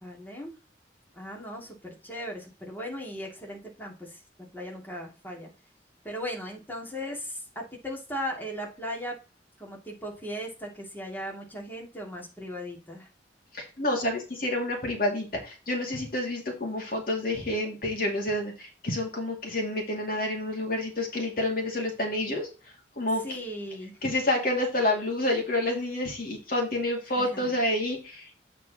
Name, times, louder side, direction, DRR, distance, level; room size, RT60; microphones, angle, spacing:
voice 1, 0.0-0.5 1.1-4.2 4.5-5.5 6.0-9.2 9.6-13.1 23.2-24.0 27.2-27.5, equal, 10° left, -1 dB, 2.4 m, -37 dB
voice 2, 13.5-22.5 23.0-23.2 24.0-28.3, left 1 dB, 55° left, 1 dB, 2.5 m, -29 dB
8.3 x 4.6 x 4.1 m, 0.31 s
head